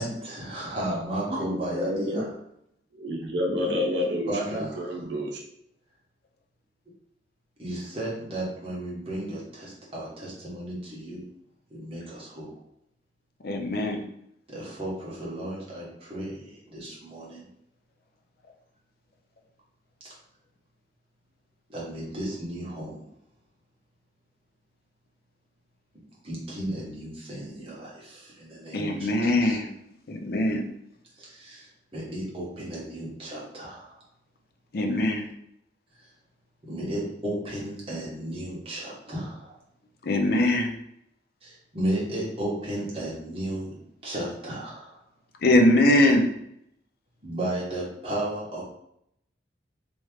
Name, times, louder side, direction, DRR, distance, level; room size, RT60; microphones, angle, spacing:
voice 1, 0.0-2.3 4.3-5.0 7.6-11.2 11.7-12.5 14.5-17.4 20.0-20.1 21.7-23.0 26.2-29.6 31.1-34.0 36.0-36.1 36.6-39.5 41.4-43.8 44.0-45.0 47.2-48.6, right 1 dB, 30° right, -5 dB, 1.3 m, -34 dB
voice 2, 1.3-2.2 2.9-5.4, left 1 dB, 80° right, 1 dB, 0.7 m, -29 dB
voice 3, 13.4-14.0 28.7-29.7 30.1-30.6 34.7-35.3 40.0-40.7 45.4-46.3, left 1 dB, 55° left, 3 dB, 0.5 m, -22 dB
3.5 x 3.1 x 3.1 m, 0.74 s
head